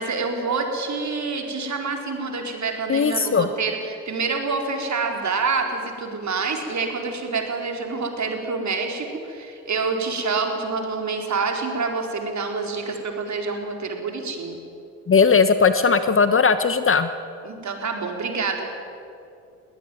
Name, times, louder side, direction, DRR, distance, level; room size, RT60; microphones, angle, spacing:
voice 1, 0.0-14.6 17.4-18.6, right 4 dB, 40° right, 3 dB, 4.4 m, -27 dB
voice 2, 2.9-3.5 15.1-17.1, left 5 dB, 30° left, 11 dB, 1.2 m, -18 dB
21.0 x 18.5 x 9.3 m, 2.6 s
figure-of-eight pair, 50°, 44 cm